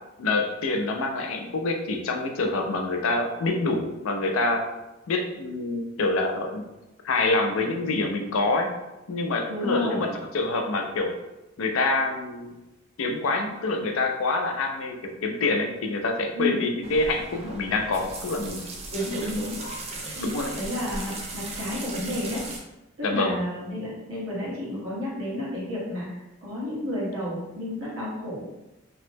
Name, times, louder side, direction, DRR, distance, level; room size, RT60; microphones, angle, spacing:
voice 1, 0.2-4.6 5.1-6.6 7.0-8.7 9.1-11.1 11.6-12.5 13.0-18.6 19.2-19.8 20.2-20.6 23.0-23.4, left 2 dB, 80° left, 4 dB, 0.4 m, -26 dB
voice 2, 9.5-10.1 16.3-16.6 18.9-19.6 20.0-20.2 20.5-22.4 23.0-26.1 26.4-28.4, left 1 dB, 80° right, -7 dB, 1.2 m, -31 dB
sound 1, 16.8-22.6, right 2 dB, 30° right, 0.4 m, -37 dB
2.9 x 2.0 x 3.3 m, 0.99 s
head